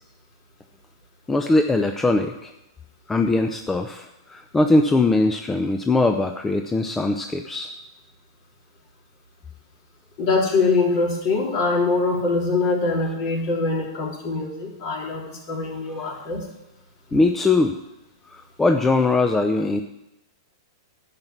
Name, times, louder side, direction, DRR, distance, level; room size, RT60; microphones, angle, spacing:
voice 1, 1.3-2.5 3.1-7.7 16.0-16.2 17.1-17.7 18.3-19.8, left 2 dB, 10° left, 5 dB, 0.6 m, -21 dB
voice 2, 10.2-16.5, left 3 dB, 50° left, -1 dB, 3.2 m, -23 dB
10.5 x 5.9 x 8.0 m, 0.91 s
hypercardioid pair, 110°, 2 cm